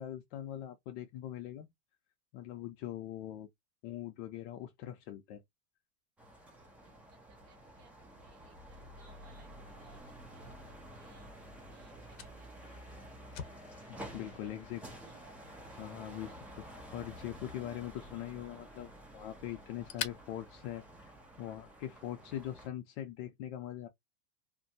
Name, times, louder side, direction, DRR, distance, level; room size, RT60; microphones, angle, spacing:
voice 1, 0.0-1.7 2.3-3.5 3.8-5.4 13.9-14.8 15.8-16.4 16.7-21.1 21.4-23.9, left 12 dB, 50° left, 0.5 m, -42 dB
sound 1, 6.2-22.7, right 1 dB, 5° right, 0.4 m, -51 dB
voice 2, 6.5-13.1 13.4-14.5 14.9-15.3 15.6-15.9, right 5 dB, 35° right, 0.9 m, -66 dB
Fire, 10.0-21.5, left 9 dB, 65° left, 0.9 m, -50 dB
sound 2, 12.6-18.3, left 3 dB, 15° left, 0.9 m, -65 dB
2.5 x 2.2 x 2.6 m
supercardioid pair, 135°, 44 cm